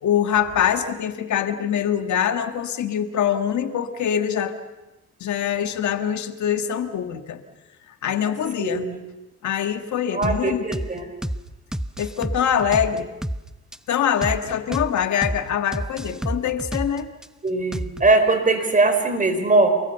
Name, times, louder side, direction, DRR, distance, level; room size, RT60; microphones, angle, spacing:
voice 1, 0.0-4.5 5.2-7.4 8.0-8.8 9.4-10.7 12.0-13.1 13.9-17.1, left 9 dB, 70° left, 8 dB, 1.7 m, -24 dB
voice 2, 8.6-9.0 10.1-11.1 17.4-19.7, right 2 dB, 25° right, 7 dB, 5.0 m, -20 dB
sound 1, 10.2-10.4 10.7-10.9 11.2-11.4 11.7-13.4 13.7-13.8 14.2-14.4 14.7-14.9 15.2-15.4 15.7-17.3 17.7-18.1, equal, ahead, 0.9 m, -28 dB
28.5 x 21.0 x 7.0 m, 1.1 s
cardioid pair, 90°, 30 cm